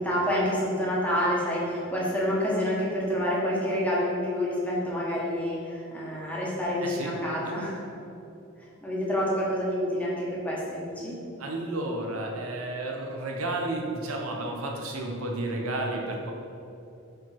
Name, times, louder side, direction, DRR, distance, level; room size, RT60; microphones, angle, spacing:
voice 1, 0.0-7.8 8.8-11.2, equal, 5° left, -6 dB, 1.4 m, -28 dB
voice 2, 6.8-7.1 7.4-7.5 11.4-16.3, right 2 dB, 85° right, 1 dB, 1.0 m, -32 dB
5.1 x 4.8 x 5.8 m, 2.7 s
head